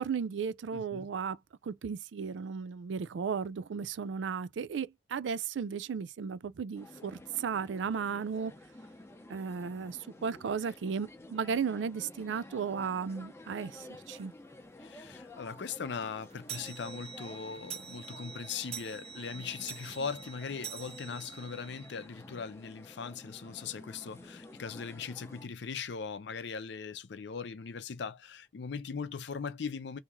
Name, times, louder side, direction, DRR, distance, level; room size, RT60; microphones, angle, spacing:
voice 1, 0.0-1.4 1.6-8.5 9.3-14.3, right 6 dB, 90° right, 0.4 m, -35 dB
voice 2, 0.7-1.1 14.8-30.0, left 5 dB, 70° left, 0.5 m, -40 dB
sound 1, 6.7-25.5, left 1 dB, 15° left, 0.6 m, -51 dB
sound 2, 14.2-14.3 14.8-14.9 15.2-15.3 15.6-22.1, right 7 dB, 35° right, 0.6 m, -46 dB
3.0 x 2.8 x 3.5 m
head